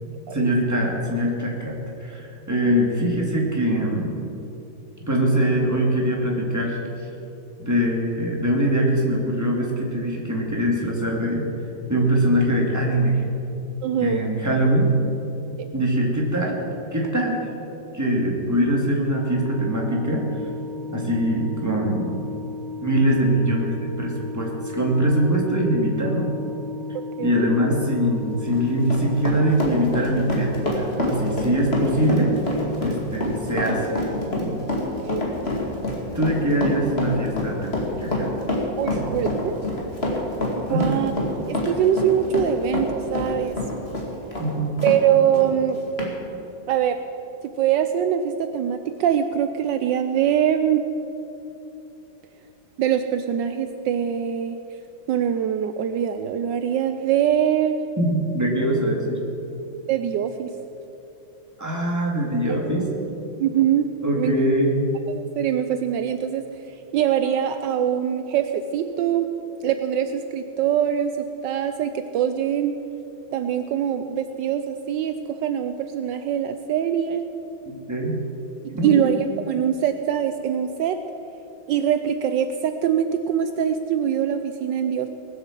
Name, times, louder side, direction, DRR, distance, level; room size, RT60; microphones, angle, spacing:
voice 1, 0.3-1.7 2.0-4.2 5.1-6.8 7.6-11.4 11.9-13.2 14.0-14.9 15.7-16.6 16.9-17.4 17.9-20.2 20.9-22.2 22.8-26.3 27.2-32.3 32.8-34.0 34.3-34.6 36.1-38.3 38.9-39.0 40.7-40.9 44.4-44.7 58.0-59.2 61.6-62.9 64.0-64.8 77.7-78.2 78.7-78.9, right 1 dB, 10° right, -2 dB, 2.3 m, -22 dB
voice 2, 13.8-14.2 15.6-15.7 26.9-27.5 35.0-35.2 38.8-39.6 40.5-41.1 41.5-43.6 44.8-45.8 46.7-47.0 47.6-50.8 52.8-54.6 55.1-57.8 59.9-60.5 63.4-64.3 65.1-66.4 66.9-69.3 69.6-72.8 73.3-77.3 78.6-81.0 81.7-85.1, right 9 dB, 75° right, 8 dB, 1.2 m, -23 dB
Organ, 19.1-30.0, left 3 dB, 55° left, 1.4 m, -36 dB
Run, 28.3-45.0 45.3-45.5 46.0-46.1, left 2 dB, 30° left, 2.5 m, -26 dB
19.5 x 8.0 x 7.4 m, 2.9 s
omnidirectional pair, 2.1 m